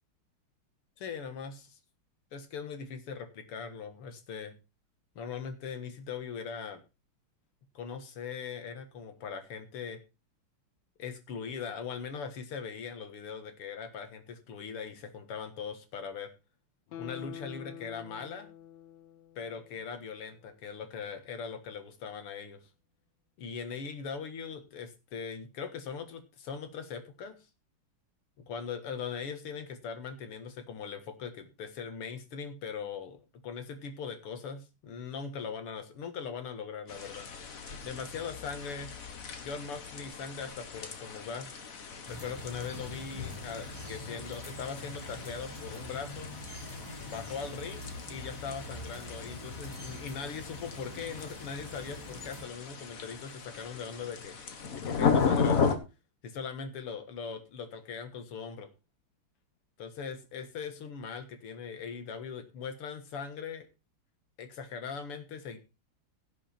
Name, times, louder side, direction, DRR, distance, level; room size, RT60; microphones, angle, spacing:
voice 1, 1.0-1.8 2.3-4.5 5.2-6.8 7.7-10.0 11.0-16.3 17.0-18.5 19.4-22.6 23.4-27.4 28.4-37.3 37.8-38.9 39.4-41.5 42.1-46.3 47.1-47.8 48.1-55.7 56.2-58.7 59.8-63.7 64.4-65.6, left 6 dB, 90° left, 8 dB, 2.5 m, -40 dB
Guitar, 16.9-20.2 20.5-20.6, left 11 dB, 60° left, 1.4 m, -47 dB
sound 1, 36.9-55.8, left 6 dB, 45° left, 1.6 m, -36 dB
sound 2, 42.0-52.4, left 1 dB, 10° left, 4.3 m, -44 dB
16.5 x 6.3 x 4.4 m, 0.29 s
omnidirectional pair, 2.4 m